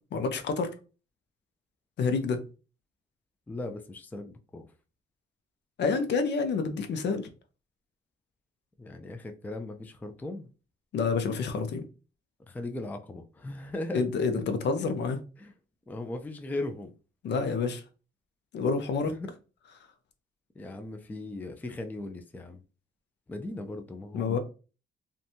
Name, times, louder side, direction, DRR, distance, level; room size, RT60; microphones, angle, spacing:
voice 1, 0.1-0.7 2.0-2.4 5.8-7.3 10.9-11.8 13.9-15.2 17.2-17.8 18.5-19.1 24.1-24.4, left 4 dB, 60° left, 0.6 m, -28 dB
voice 2, 3.5-4.6 8.8-10.5 12.5-14.0 15.4-15.5 15.9-16.9 19.1-19.3 20.6-22.6 23.3-24.4, left 2 dB, 10° left, 0.3 m, -38 dB
2.6 x 2.2 x 2.7 m
cardioid pair, 90°, 20 cm